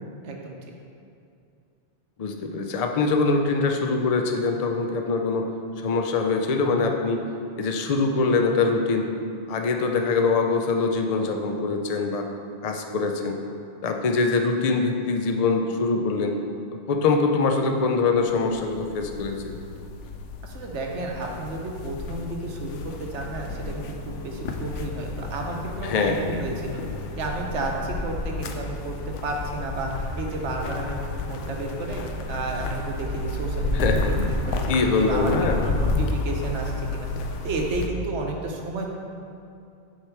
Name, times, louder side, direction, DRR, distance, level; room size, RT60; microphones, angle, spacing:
voice 1, 0.2-0.6 20.4-26.8 27.2-31.0 31.3-37.1 37.4-38.9, right 2 dB, 75° right, 1 dB, 1.2 m, -32 dB
voice 2, 2.2-5.5 5.8-7.2 7.6-9.1 9.5-12.3 12.6-13.4 13.8-16.4 16.9-19.7 25.8-26.3 33.7-34.1 34.7-35.6, left 4 dB, 45° left, 4 dB, 0.5 m, -23 dB
sound 1, 18.2-37.9, left 2 dB, 90° left, 0.9 m, -31 dB
7.4 x 4.9 x 4.5 m, 2.5 s
omnidirectional pair, 1.2 m